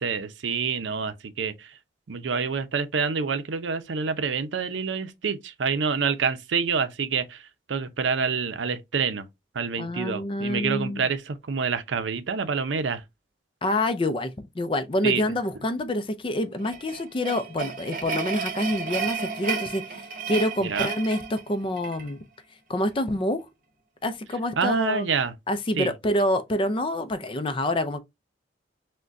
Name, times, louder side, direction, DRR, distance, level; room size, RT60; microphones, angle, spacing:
voice 1, 0.0-1.7 2.1-9.3 9.5-13.0 15.0-15.2 20.6-20.9 24.6-25.3 25.8-25.9, right 5 dB, 85° right, 0.5 m, -27 dB
voice 2, 9.8-11.1 13.6-22.2 22.7-23.5 24.0-25.1 25.5-28.0, left 1 dB, 30° left, 0.4 m, -27 dB
sound 1, 16.6-22.1, right 6 dB, 45° right, 0.7 m, -32 dB
6.1 x 2.2 x 2.6 m
head